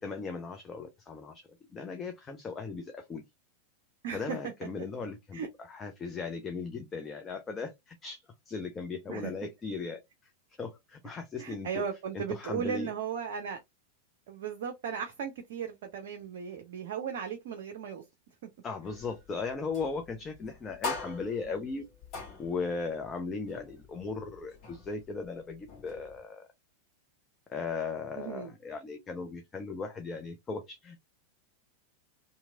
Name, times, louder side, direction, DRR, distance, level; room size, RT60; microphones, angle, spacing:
voice 1, 0.0-3.2 4.1-10.3 10.6-11.7 12.1-12.9 18.6-21.8 22.4-26.5 27.5-31.0, left 4 dB, 20° left, 0.5 m, -37 dB
voice 2, 4.0-4.4 5.3-5.5 9.1-9.3 11.4-13.6 14.3-18.0 28.2-28.5, right 7 dB, 55° right, 0.5 m, -36 dB
sound 1, 18.8-26.2, left 3 dB, 35° left, 1.3 m, -44 dB
2.9 x 2.6 x 2.3 m
figure-of-eight pair, 90°, 0 cm